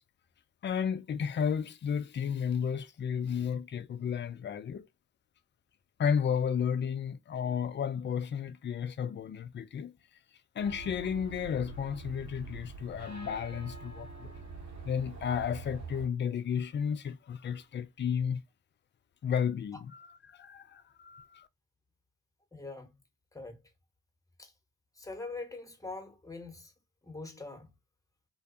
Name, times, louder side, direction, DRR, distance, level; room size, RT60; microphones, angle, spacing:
voice 1, 0.6-4.9 6.0-9.9 10.6-14.3 14.8-18.4 19.2-21.5, left 7 dB, 35° left, 0.4 m, -33 dB
sound 1, 10.6-16.1, right 3 dB, 55° right, 1.4 m, -45 dB
voice 2, 22.5-22.9 23.3-23.6 24.4-24.5 25.0-26.7 27.0-27.7, left 3 dB, 10° left, 1.0 m, -43 dB
2.5 x 2.2 x 2.6 m
hypercardioid pair, 40°, 33 cm